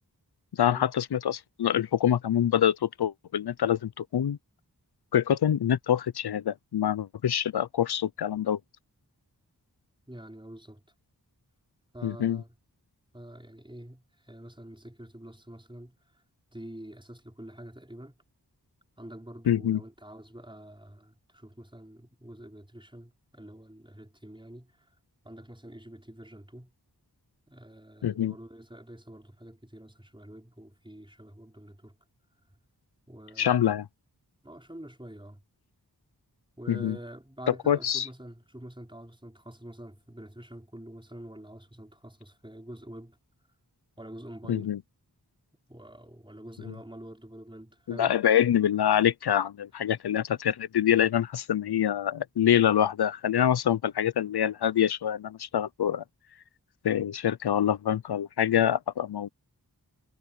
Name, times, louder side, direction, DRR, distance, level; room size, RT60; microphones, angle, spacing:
voice 1, 0.5-4.4 5.1-8.6 12.0-12.4 19.5-19.8 28.0-28.3 33.4-33.8 36.7-37.0 37.7-38.1 44.5-44.8 47.9-56.0 56.8-59.3, left 10 dB, 85° left, 0.6 m, -25 dB
voice 2, 10.1-10.8 11.9-12.6 13.1-16.0 16.5-18.2 19.0-24.9 25.2-26.7 27.5-31.9 33.1-33.9 34.4-35.4 36.6-43.2 44.0-44.7 45.7-48.2, right 1 dB, 15° right, 5.4 m, -46 dB
wide cardioid pair, 45°, 38 cm